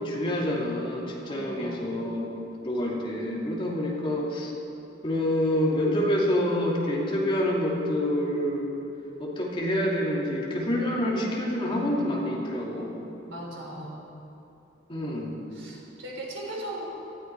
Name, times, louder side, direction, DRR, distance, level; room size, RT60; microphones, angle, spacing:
voice 1, 0.0-2.4 2.6-4.5 5.0-8.7 9.2-12.9 14.9-15.4, left 1 dB, 25° left, -4 dB, 2.7 m, -27 dB
voice 2, 1.3-2.0 13.3-14.0 15.5-16.8, right 1 dB, 90° right, -3 dB, 4.2 m, -38 dB
18.5 x 13.5 x 4.7 m, 2.9 s
head